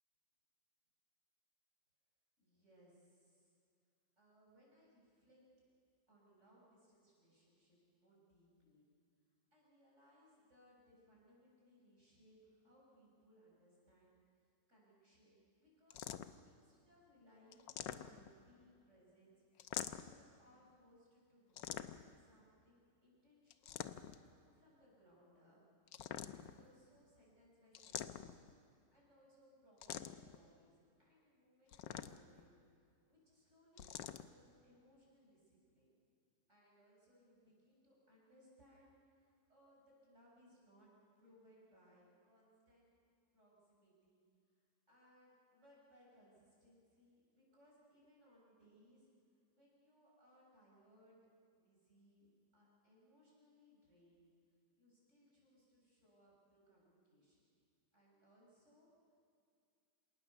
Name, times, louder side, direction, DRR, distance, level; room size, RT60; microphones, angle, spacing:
voice 1, 2.4-3.5 4.2-5.4 6.1-8.9 9.5-16.2 16.5-21.9 22.2-23.9 24.2-25.6 26.2-28.4 28.9-32.6 33.0-35.9 36.5-40.9 41.2-42.9 43.3-44.2 44.9-49.1 49.5-51.2 51.6-52.3 52.5-54.3 54.8-57.5 57.9-59.2, equal, 40° right, -5 dB, 7.2 m, -68 dB
sound 1, 15.9-16.5 17.5-18.4 19.6-20.2 21.6-22.2 23.5-24.3 25.9-26.6 27.8-28.5 29.8-30.4 31.7-32.4 33.8-34.3, left 10 dB, 90° left, 1.5 m, -46 dB
26.5 x 18.5 x 6.9 m, 2.3 s
omnidirectional pair, 1.9 m